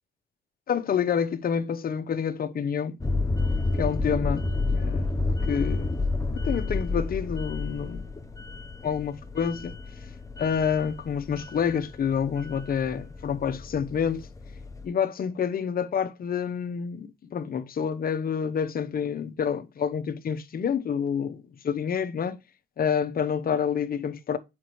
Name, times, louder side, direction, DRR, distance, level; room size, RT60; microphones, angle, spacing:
voice 1, 0.7-3.0 3.8-5.0 5.5-5.9 6.3-8.1 8.8-9.8 10.4-14.3 14.8-22.4 22.8-24.4, left 7 dB, 50° left, 0.8 m, -28 dB
sound 1, 3.0-14.9, left 3 dB, 15° left, 0.8 m, -30 dB
7.3 x 5.2 x 3.0 m
cardioid pair, 90°, 20 cm